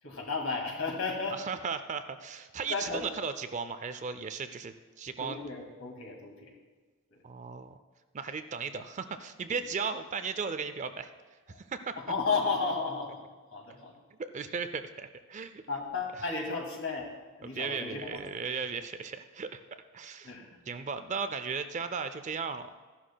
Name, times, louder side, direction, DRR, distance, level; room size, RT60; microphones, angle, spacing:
voice 1, 0.0-1.4 2.7-3.1 5.2-6.5 7.1-7.2 11.5-11.6 12.0-13.2 13.5-14.0 15.7-17.1 17.4-18.2 20.2-20.6, left 4 dB, 65° left, 0 dB, 2.2 m, -33 dB
voice 2, 1.5-5.4 7.2-7.8 8.1-11.1 11.6-11.9 14.2-15.6 17.5-19.6 19.9-20.3 20.7-22.7, right 5 dB, 35° right, 10 dB, 0.4 m, -36 dB
14.5 x 11.0 x 2.3 m, 1.4 s
head